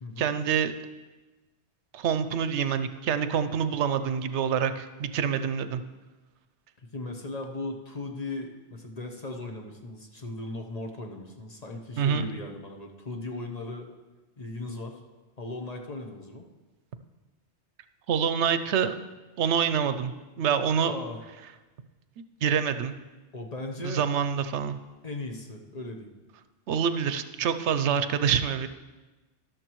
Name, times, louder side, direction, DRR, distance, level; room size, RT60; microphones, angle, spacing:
voice 1, 0.2-0.7 1.9-5.8 12.0-12.3 18.1-18.9 19.4-20.1 20.4-20.9 22.4-22.9 23.8-24.8 26.7-28.7, right 7 dB, 80° right, 11 dB, 0.9 m, -26 dB
voice 2, 6.8-13.9 14.4-15.0 15.4-16.5 20.8-21.2 23.3-24.1 25.0-26.1, left 2 dB, 35° left, 2 dB, 1.0 m, -37 dB
13.0 x 11.5 x 3.1 m, 1.2 s
omnidirectional pair, 1.2 m